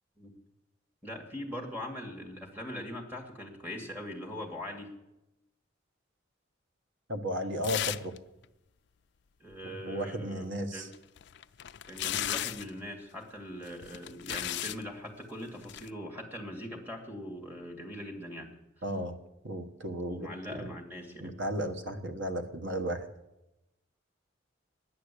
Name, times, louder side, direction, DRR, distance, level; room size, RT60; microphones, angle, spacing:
voice 1, 1.0-4.9 9.4-10.9 11.9-18.5 20.1-21.3, equal, 10° right, 3 dB, 2.2 m, -41 dB
voice 2, 7.1-8.1 9.6-10.9 18.8-19.2 19.4-20.7 21.2-23.1, equal, 65° right, 6 dB, 1.4 m, -34 dB
sound 1, 7.6-8.2 8.4-8.5 10.9-12.7 13.7-14.8 15.6-15.9, left 12 dB, 60° left, 0.4 m, -35 dB
11.5 x 10.0 x 8.4 m, 0.94 s
head